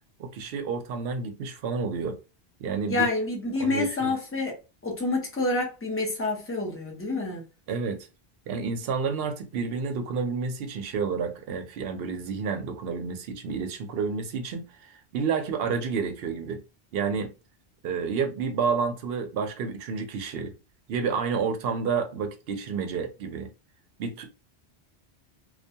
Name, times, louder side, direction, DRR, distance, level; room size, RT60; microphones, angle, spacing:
voice 1, 0.2-2.2 2.6-3.1 3.6-4.1 7.7-8.1 8.5-16.6 16.9-17.3 17.8-20.5 20.9-23.5 24.0-24.3, right 5 dB, 65° right, 0.7 m, -30 dB
voice 2, 2.9-4.6 4.8-7.4, left 3 dB, 15° left, 0.5 m, -28 dB
2.3 x 2.2 x 2.7 m
omnidirectional pair, 1.1 m